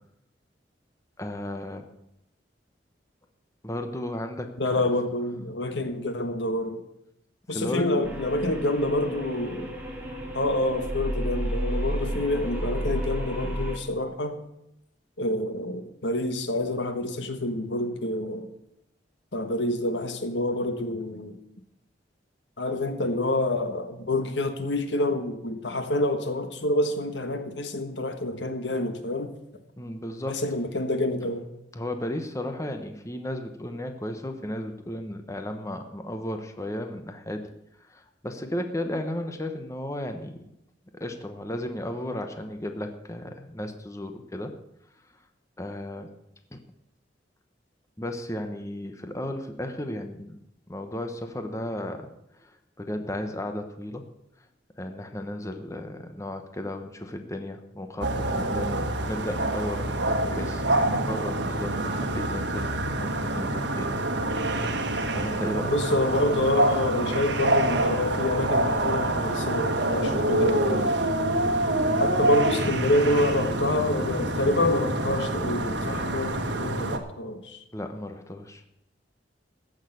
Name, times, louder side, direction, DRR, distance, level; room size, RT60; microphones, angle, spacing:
voice 1, 1.2-1.9 3.6-4.8 7.5-8.0 29.8-30.4 31.2-31.3 31.7-37.4 37.9-40.4 40.9-44.5 45.6-46.1 46.5-46.6 48.0-50.4 50.7-52.1 52.4-54.0 54.8-63.9 65.1-65.7 77.7-78.6, left 1 dB, 15° left, 6 dB, 1.0 m, -34 dB
voice 2, 4.6-6.8 7.5-9.8 10.3-14.4 15.2-18.5 19.3-21.4 22.6-29.3 30.3-31.5 65.6-71.0 72.0-77.6, left 1 dB, 80° left, 7 dB, 1.5 m, -27 dB
sound 1, 8.0-13.8, equal, 10° right, 2.7 m, -32 dB
sound 2, 58.0-77.0, right 1 dB, 75° right, 1.4 m, -26 dB
15.0 x 6.6 x 7.9 m, 0.83 s
head